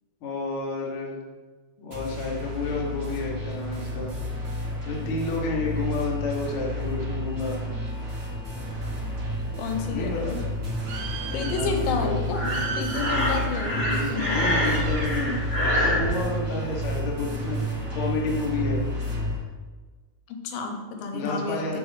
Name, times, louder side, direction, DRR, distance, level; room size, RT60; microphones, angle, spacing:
voice 1, 0.2-1.2 1.8-4.2 4.8-7.6 9.9-10.4 11.3-12.8 13.7-15.4 15.8-18.9 21.1-21.8, left 3 dB, 60° left, -2 dB, 1.3 m, -30 dB
sound 1, 1.9-19.4, equal, 60° right, 0.9 m, -31 dB
Bird, 8.6-17.6, right 3 dB, 75° right, 2.2 m, -39 dB
voice 2, 9.6-10.4 11.3-14.5 20.3-21.8, left 4 dB, 85° left, 4 dB, 2.5 m, -31 dB
Breathing, 12.3-16.1, left 1 dB, 20° left, 1.3 m, -26 dB
7.2 x 6.0 x 3.4 m, 1.3 s
omnidirectional pair, 4.1 m